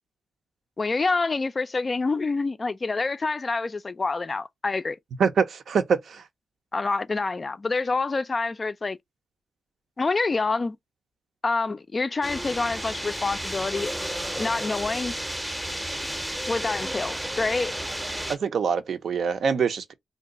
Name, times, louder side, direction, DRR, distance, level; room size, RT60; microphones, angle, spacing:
voice 1, 0.8-5.0 6.7-9.0 10.0-10.8 11.4-13.9 14.4-15.1 16.5-17.8, left 3 dB, 35° left, 0.3 m, -27 dB
voice 2, 5.2-6.2 18.3-19.9, right 6 dB, 70° right, 0.6 m, -24 dB
sound 1, 12.2-18.4, right 1 dB, 10° right, 0.6 m, -32 dB
2.6 x 2.3 x 3.7 m
cardioid pair, 80°, 0 cm